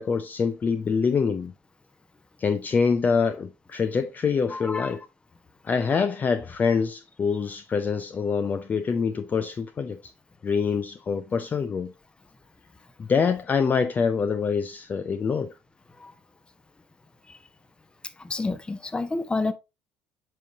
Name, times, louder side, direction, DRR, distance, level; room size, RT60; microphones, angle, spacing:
voice 1, 0.0-1.5 2.4-5.0 5.6-10.1 10.4-11.9 13.0-15.5, left 5 dB, 35° left, 0.6 m, -25 dB
voice 2, 4.5-5.0 16.0-16.1 17.3-17.4 18.2-19.5, left 3 dB, 20° left, 1.0 m, -30 dB
7.6 x 5.4 x 2.7 m
hypercardioid pair, 60°, 5 cm